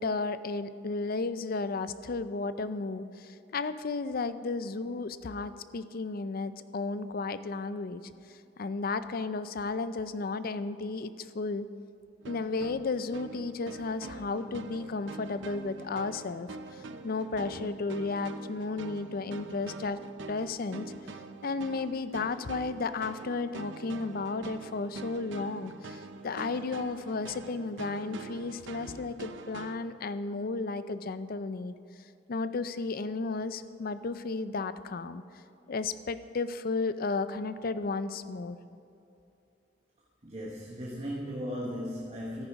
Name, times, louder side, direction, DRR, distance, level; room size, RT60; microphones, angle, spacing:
voice 1, 0.0-8.0 8.3-11.7 12.3-20.0 20.3-20.9 21.1-31.7 32.3-35.2 35.7-38.6, left 3 dB, 50° left, 13 dB, 0.5 m, -33 dB
sound 1, 12.2-29.8, right 3 dB, 75° right, 0.7 m, -45 dB
voice 2, 40.2-42.5, equal, 35° right, -3 dB, 1.3 m, -37 dB
13.5 x 10.5 x 4.8 m, 2.7 s
head